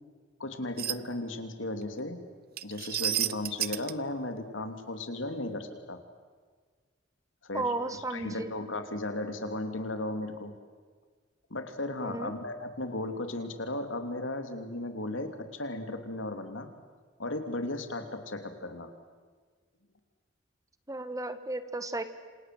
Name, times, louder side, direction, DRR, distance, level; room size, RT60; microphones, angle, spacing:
voice 1, 0.4-2.2 2.6-6.0 7.4-7.7 8.1-10.5 11.5-16.7 17.2-18.9, left 2 dB, 75° left, 8 dB, 3.0 m, -35 dB
sound 1, 0.8-1.0 2.6-3.9, right 13 dB, 55° right, 0.8 m, -30 dB
voice 2, 7.5-8.5 12.0-12.3 20.9-22.0, right 2 dB, 15° right, 11 dB, 1.4 m, -34 dB
28.0 x 27.0 x 7.8 m, 1.5 s
head